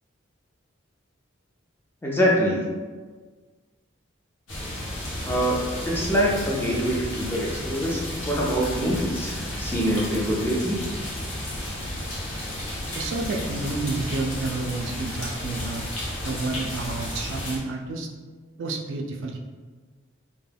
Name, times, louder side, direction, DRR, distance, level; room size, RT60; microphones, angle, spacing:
voice 1, 2.0-2.7 5.2-10.8, equal, 10° left, -4 dB, 0.4 m, -25 dB
sound 1, 4.5-17.6, left 1 dB, 80° left, 0.8 m, -32 dB
voice 2, 11.5-11.9 12.2-12.3 13.0-15.8 16.2-18.1 18.6-19.4, right 3 dB, 70° right, 2 dB, 0.3 m, -30 dB
2.2 x 2.1 x 3.3 m, 1.4 s
head